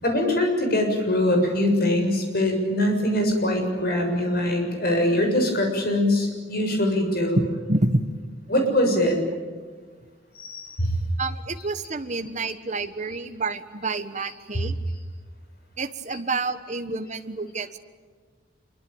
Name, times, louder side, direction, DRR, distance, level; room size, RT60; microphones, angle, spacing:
voice 1, 0.0-7.4 8.5-9.2 10.4-10.9 12.8-12.9, left 1 dB, 50° left, 3 dB, 7.0 m, -23 dB
voice 2, 7.7-8.0 11.2-14.8 15.8-17.8, right 2 dB, 40° right, 8 dB, 1.4 m, -28 dB
26.5 x 23.5 x 8.9 m, 1.5 s
head